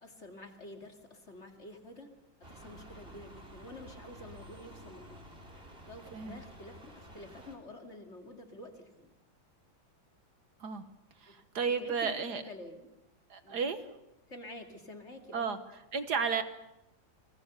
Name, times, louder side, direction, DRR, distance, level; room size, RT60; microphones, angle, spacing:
voice 1, 0.0-2.1 2.5-5.3 5.8-9.1 11.3-11.4 11.7-12.1 12.5-12.9 13.4-13.6 14.3-15.5, left 1 dB, 35° left, 5 dB, 2.6 m, -49 dB
sound 1, 2.4-7.6, right 1 dB, 30° right, 3.6 m, -51 dB
voice 2, 11.2-12.4 13.3-13.8 15.3-15.6 15.9-16.4, right 5 dB, 60° right, 10 dB, 1.7 m, -32 dB
29.5 x 19.5 x 6.8 m, 0.89 s
omnidirectional pair, 2.1 m